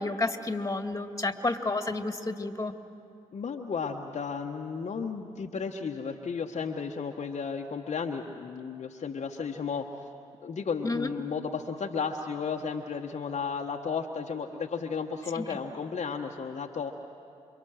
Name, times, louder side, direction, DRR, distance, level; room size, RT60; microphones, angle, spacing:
voice 1, 0.0-2.7 10.8-11.1 15.3-15.4, left 2 dB, 20° left, 7 dB, 2.3 m, -30 dB
voice 2, 3.3-9.9 10.4-16.9, left 5 dB, 45° left, 2 dB, 1.3 m, -33 dB
28.5 x 24.0 x 6.5 m, 2.5 s
hypercardioid pair, 40°, 15 cm